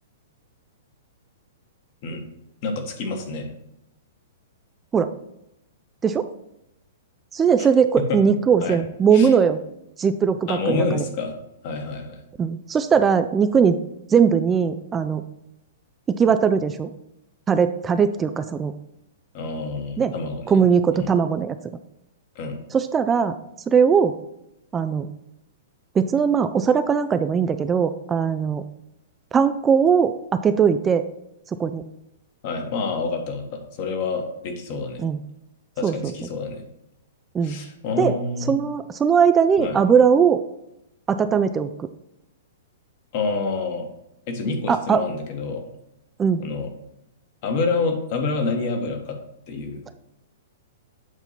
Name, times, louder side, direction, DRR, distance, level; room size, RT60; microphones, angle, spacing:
voice 1, 2.6-3.5 8.1-8.2 8.6-8.8 9.1-9.3 10.5-11.4 11.6-12.2 19.3-20.6 20.9-21.1 22.3-22.6 32.4-35.0 35.8-36.6 37.4-38.5 39.6-39.8 43.1-43.9 44.3-45.6 46.4-46.7 47.4-49.2 49.5-49.8, left 4 dB, 50° left, 4 dB, 1.4 m, -27 dB
voice 2, 7.3-9.6 10.0-11.0 12.4-13.8 14.1-15.2 16.1-16.9 17.5-18.7 20.0-20.1 20.5-21.6 22.7-23.3 23.7-24.1 24.7-25.1 25.9-28.6 29.3-31.0 31.6-31.8 35.0-35.2 35.8-36.1 37.3-37.6 38.0-38.1 38.5-40.4 41.1-41.9 44.7-45.0 46.2-46.4, right 6 dB, 20° right, 10 dB, 0.3 m, -19 dB
8.0 x 2.8 x 5.8 m, 0.85 s
hypercardioid pair, 115°, 0 cm